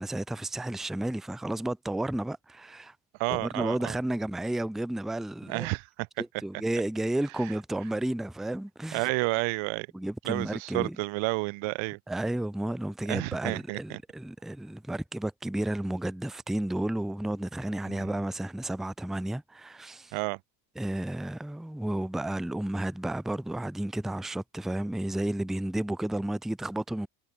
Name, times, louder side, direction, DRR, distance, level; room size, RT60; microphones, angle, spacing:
voice 1, 0.0-2.9 3.3-5.7 6.2-9.1 9.9-11.0 12.1-20.2 20.8-27.1, right 1 dB, ahead, 0.6 m, -32 dB
voice 2, 3.2-4.0 5.5-6.1 8.9-9.9 10.2-12.0 13.1-14.0 17.9-18.1 20.1-20.4, right 27 dB, 75° right, 0.9 m, -30 dB
hypercardioid pair, 65°, 48 cm